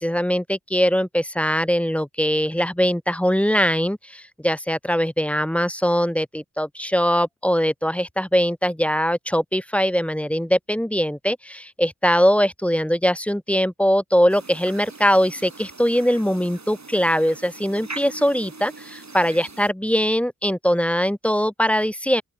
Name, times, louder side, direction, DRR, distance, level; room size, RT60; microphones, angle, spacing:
voice 1, 0.0-22.2, equal, 5° left, 0.6 m, -21 dB
sound 1, 14.3-19.7, right 3 dB, 50° right, 7.0 m, -41 dB
open air
wide cardioid pair, 65°, 36 cm